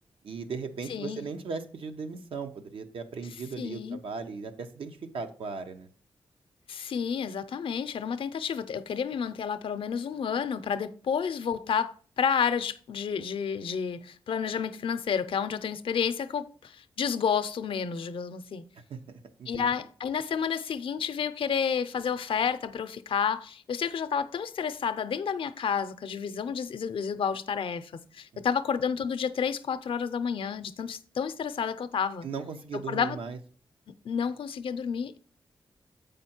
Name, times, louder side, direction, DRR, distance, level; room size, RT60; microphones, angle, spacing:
voice 1, 0.2-5.9 18.9-19.0 19.4-19.7 28.3-28.4 32.2-33.4, right 5 dB, 85° right, 0.8 m, -37 dB
voice 2, 0.9-1.2 3.6-4.0 6.7-18.6 19.5-32.3 32.7-33.2 33.9-35.2, left 7 dB, 75° left, 0.5 m, -30 dB
7.7 x 5.1 x 4.3 m
cardioid pair, 85°, 9 cm